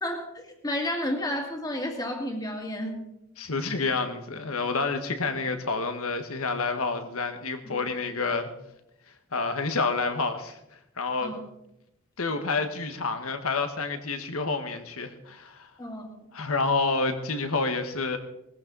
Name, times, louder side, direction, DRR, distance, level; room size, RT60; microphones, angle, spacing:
voice 1, 0.0-3.1 7.6-7.8 11.2-11.4 15.8-16.3, left 1 dB, 20° left, 2 dB, 2.2 m, -32 dB
voice 2, 3.4-8.5 9.3-10.6 11.0-11.3 12.2-15.7 16.3-18.2, left 3 dB, 90° left, 8 dB, 1.5 m, -28 dB
19.5 x 14.5 x 4.0 m, 0.85 s
head